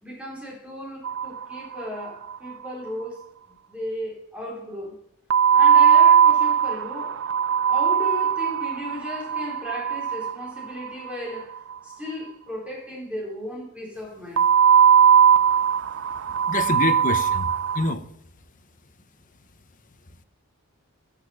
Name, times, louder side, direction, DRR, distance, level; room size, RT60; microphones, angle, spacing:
voice 1, 0.0-4.9 5.5-7.2 7.7-11.6 11.8-14.5, left 1 dB, 5° right, 3.7 m, -35 dB
sound 1, 1.0-2.0 2.3-2.4 2.6-2.7 5.3-11.4 14.4-17.9, right 8 dB, 60° right, 0.4 m, -19 dB
voice 2, 16.5-18.0, left 2 dB, 40° left, 0.9 m, -26 dB
13.0 x 6.6 x 5.5 m
head